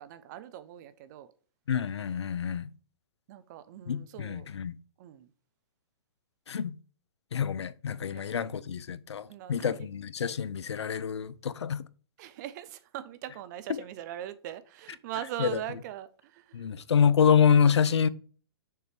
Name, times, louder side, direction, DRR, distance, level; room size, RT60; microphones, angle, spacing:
voice 1, 0.0-1.3 3.3-4.5 5.0-5.3 8.1-8.2 9.3-9.9 12.2-16.7, right 12 dB, 40° right, 0.6 m, -41 dB
voice 2, 1.7-2.7 3.9-4.8 6.5-6.7 7.3-11.8 13.7-13.8 15.4-15.6 16.5-18.1, left 7 dB, 85° left, 0.5 m, -26 dB
6.7 x 3.2 x 4.5 m
hypercardioid pair, 135°, 14 cm